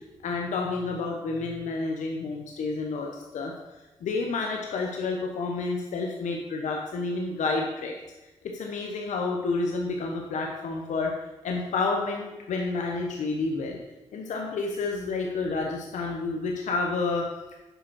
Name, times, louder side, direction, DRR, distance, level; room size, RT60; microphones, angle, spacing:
voice 1, 0.2-3.5 4.0-7.9 8.5-11.1 11.4-13.8 14.1-17.3, left 3 dB, 90° left, 1 dB, 0.9 m, -29 dB
7.9 x 5.1 x 5.9 m, 1.1 s
cardioid pair, 55°, 12 cm